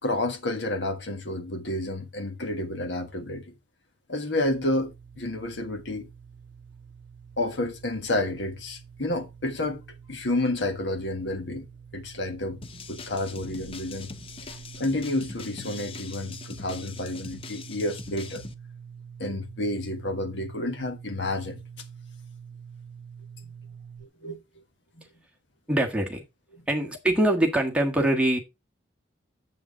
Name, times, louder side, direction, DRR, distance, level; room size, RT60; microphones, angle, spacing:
voice 1, 0.0-3.5 4.1-6.1 7.4-9.8 10.1-11.7 11.9-12.6 12.9-14.1 14.8-18.4 19.2-21.6 23.4-23.5 24.0-24.4 24.9-25.0 26.5-26.6, left 1 dB, 70° left, 1.5 m, -30 dB
sound 1, 4.4-24.1, right 6 dB, 45° right, 0.5 m, -46 dB
sound 2, 12.6-18.5, left 4 dB, 30° left, 0.6 m, -42 dB
voice 2, 25.7-26.2 26.7-28.4, right 1 dB, 5° right, 1.5 m, -23 dB
7.5 x 7.0 x 3.9 m
head